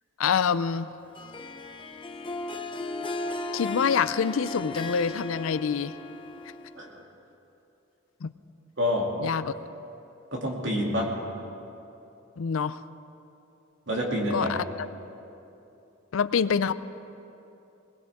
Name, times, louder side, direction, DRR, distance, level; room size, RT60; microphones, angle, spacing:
voice 1, 0.2-0.9 3.5-5.9 8.2-8.3 9.2-9.5 12.4-12.8 14.3-14.6 16.1-16.7, left 6 dB, 80° left, 15 dB, 0.5 m, -26 dB
Harp, 1.1-6.9, left 2 dB, 25° left, 0.8 m, -36 dB
voice 2, 8.8-9.1 10.3-11.1 13.9-14.5, left 1 dB, 60° right, -2 dB, 2.7 m, -27 dB
21.0 x 19.0 x 3.6 m, 2.8 s
head